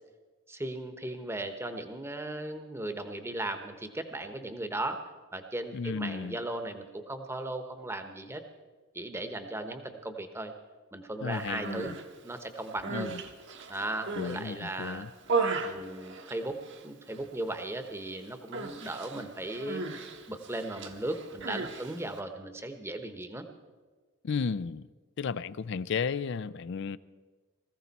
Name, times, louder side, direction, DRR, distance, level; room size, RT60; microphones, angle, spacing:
voice 1, 0.5-5.0 5.3-8.4 8.9-10.5 10.9-11.9 12.2-13.1 13.7-15.0 15.6-16.6 16.8-19.8 20.3-23.4, right 1 dB, 10° right, 7 dB, 1.0 m, -37 dB
voice 2, 5.7-6.4 11.2-12.0 12.9-13.2 14.1-15.1 24.2-24.9 25.2-27.0, left 5 dB, 55° left, 17 dB, 0.4 m, -33 dB
Human voice, 11.4-12.1 12.6-14.4 14.8-16.8 17.1-17.6 17.8-18.1 18.5-22.2, right 4 dB, 55° right, 1.2 m, -36 dB
19.5 x 15.0 x 4.2 m, 1.4 s
head